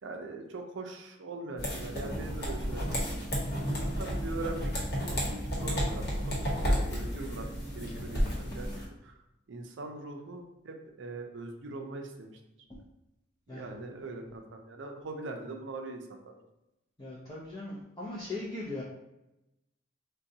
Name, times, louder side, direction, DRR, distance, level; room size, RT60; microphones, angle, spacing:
voice 1, 0.0-3.7 4.0-8.8 9.0-9.1 9.5-12.4 13.5-16.4, right 2 dB, 65° right, 3 dB, 0.5 m, -42 dB
sound 1, 1.6-8.8, equal, 55° left, 1.0 m, -32 dB
voice 2, 17.0-18.8, left 2 dB, 20° left, -7 dB, 0.5 m, -39 dB
3.8 x 2.2 x 2.7 m, 0.92 s
head